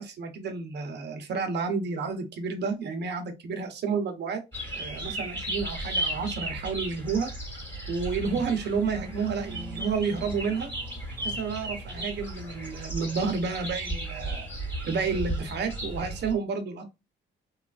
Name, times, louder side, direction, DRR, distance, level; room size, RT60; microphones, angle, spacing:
voice 1, 0.0-4.4 4.7-7.3 7.9-10.7 11.2-14.5 14.9-16.9, right 5 dB, 60° right, 0.7 m, -30 dB
sound 1, 4.5-16.3, right 1 dB, 10° left, 1.3 m, -35 dB
3.1 x 2.4 x 2.4 m
cardioid pair, 90°, 20 cm